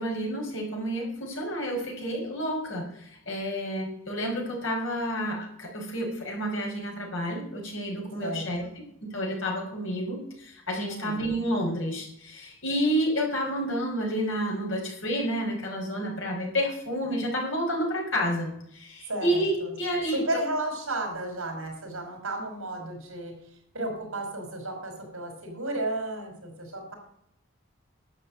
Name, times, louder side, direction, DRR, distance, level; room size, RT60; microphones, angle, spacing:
voice 1, 0.0-8.6 9.0-20.2, equal, 65° left, -1 dB, 5.2 m, -30 dB
voice 2, 8.2-8.7 10.8-11.3 19.1-19.7 20.1-23.3 23.7-26.9, right 1 dB, 75° right, 3 dB, 5.1 m, -33 dB
12.0 x 7.5 x 8.1 m, 0.72 s
head